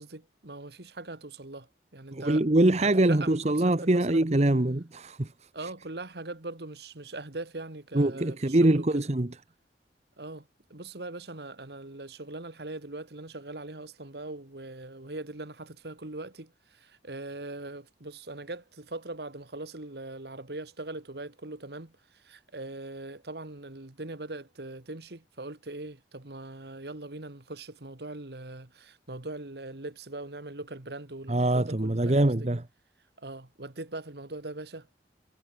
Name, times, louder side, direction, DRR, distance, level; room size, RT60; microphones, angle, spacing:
voice 1, 0.0-2.4 2.8-4.2 5.5-8.9 10.2-32.3 33.2-34.9, right 2 dB, 65° right, 1.7 m, -41 dB
voice 2, 2.1-5.3 7.9-9.3 31.3-32.6, right 1 dB, 40° right, 1.0 m, -24 dB
head